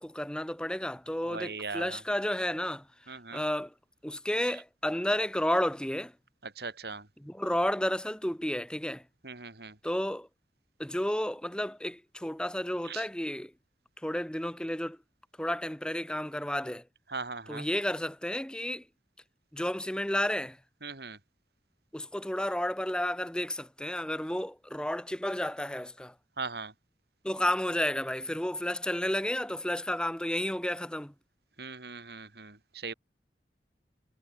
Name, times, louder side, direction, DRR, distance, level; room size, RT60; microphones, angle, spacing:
voice 1, 0.0-3.7 4.0-6.1 7.2-9.0 9.8-10.3 10.8-13.5 14.0-15.0 15.4-16.8 17.5-18.8 19.5-20.6 21.9-26.1 27.2-31.1, left 1 dB, 5° left, 0.9 m, -32 dB
voice 2, 1.3-2.0 3.1-3.4 6.4-7.1 9.2-9.8 12.8-13.0 17.1-17.7 20.8-21.2 26.4-26.7 31.6-32.9, right 4 dB, 65° right, 3.0 m, -39 dB
head